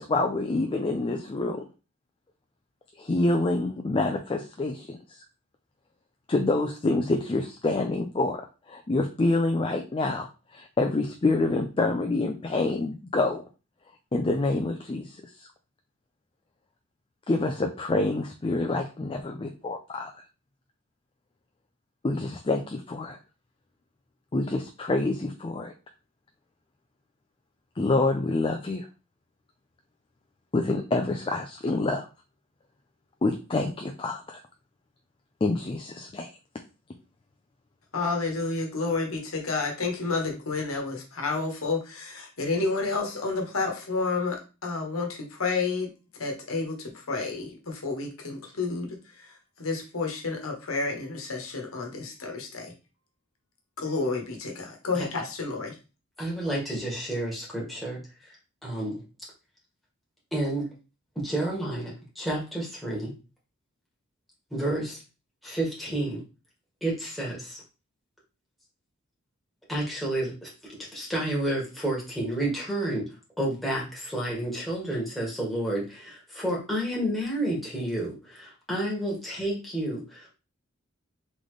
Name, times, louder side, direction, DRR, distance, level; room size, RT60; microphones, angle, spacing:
voice 1, 0.0-1.7 3.0-5.2 6.3-10.3 10.5-13.4 14.1-15.5 17.3-20.1 22.0-23.2 24.3-25.7 27.8-28.9 30.5-32.1 33.2-34.4 35.4-36.3, left 2 dB, 25° left, 4 dB, 0.4 m, -27 dB
voice 2, 37.9-45.9 46.2-52.7 53.8-55.7, left 3 dB, 75° left, 2 dB, 1.2 m, -30 dB
voice 3, 56.2-58.0 58.6-59.0 60.3-60.7 61.1-63.1 64.5-65.0 65.4-66.2 66.8-67.6 69.7-70.5 70.9-73.1 73.4-80.3, right 1 dB, ahead, -5 dB, 1.7 m, -30 dB
3.9 x 3.6 x 3.2 m, 0.31 s
head